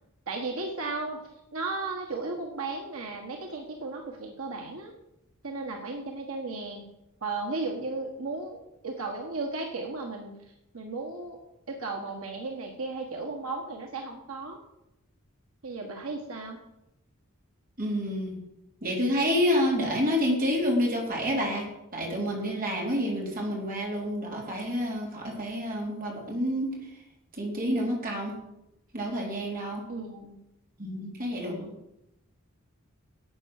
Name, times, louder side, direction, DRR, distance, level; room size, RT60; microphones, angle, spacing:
voice 1, 0.3-1.2 1.5-4.9 5.4-6.8 7.2-8.6 8.8-10.4 10.7-11.4 11.7-14.6 15.6-16.6 29.9-30.4 31.4-31.7, right 3 dB, 80° right, 2 dB, 1.6 m, -35 dB
voice 2, 17.8-18.4 18.8-21.7 21.9-26.7 27.4-28.3 28.9-29.8 30.8-31.6, equal, 40° right, -1 dB, 4.0 m, -28 dB
12.0 x 8.3 x 6.6 m, 0.88 s
head